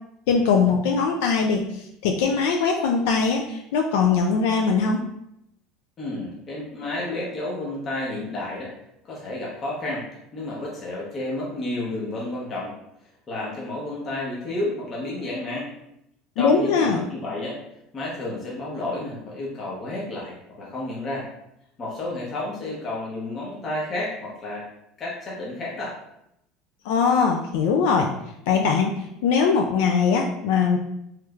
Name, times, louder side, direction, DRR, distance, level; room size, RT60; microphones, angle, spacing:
voice 1, 0.3-5.0 16.4-17.1 26.8-28.1 28.5-30.8, left 5 dB, 80° left, 2 dB, 0.3 m, -21 dB
voice 2, 6.0-8.7 9.0-10.1 10.3-12.7 13.3-15.7 16.4-17.6 17.9-21.3 21.8-24.7 25.0-25.9, left 2 dB, 30° left, -5 dB, 0.8 m, -31 dB
3.2 x 3.1 x 2.3 m, 0.80 s
supercardioid pair, 130°, 0 cm